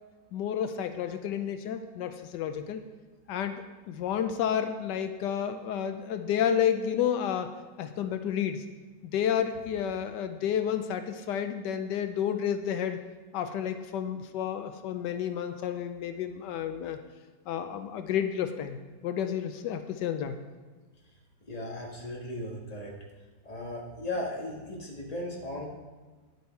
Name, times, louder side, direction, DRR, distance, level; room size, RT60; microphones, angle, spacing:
voice 1, 0.3-2.8 3.3-7.5 7.8-8.6 9.0-13.0 13.3-17.0 17.5-20.4, left 9 dB, 85° left, 8 dB, 1.3 m, -31 dB
voice 2, 21.5-22.9 23.4-25.7, left 1 dB, 25° left, -1 dB, 1.8 m, -36 dB
10.5 x 8.2 x 4.5 m, 1.4 s
omnidirectional pair, 1.8 m